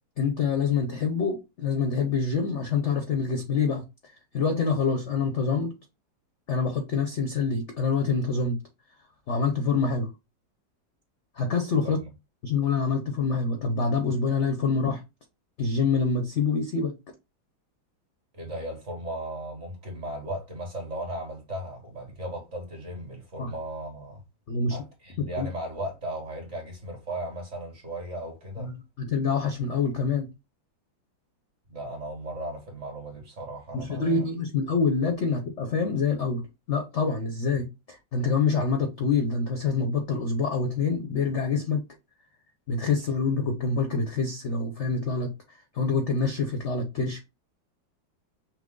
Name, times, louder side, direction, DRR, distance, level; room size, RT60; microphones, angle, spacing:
voice 1, 0.2-3.8 4.3-5.7 6.5-8.6 9.3-10.1 11.4-12.0 12.4-15.0 15.6-17.0 23.4-23.5 24.5-24.8 25.2-25.5 28.6-28.7 29.0-30.3 33.7-36.4 36.7-41.8 42.7-45.3 45.7-47.2, left 4 dB, 55° left, 0.8 m, -26 dB
voice 2, 18.3-24.2 24.7-28.7 31.7-34.2, right 1 dB, 40° right, 1.6 m, -36 dB
6.0 x 2.0 x 3.7 m
omnidirectional pair, 2.1 m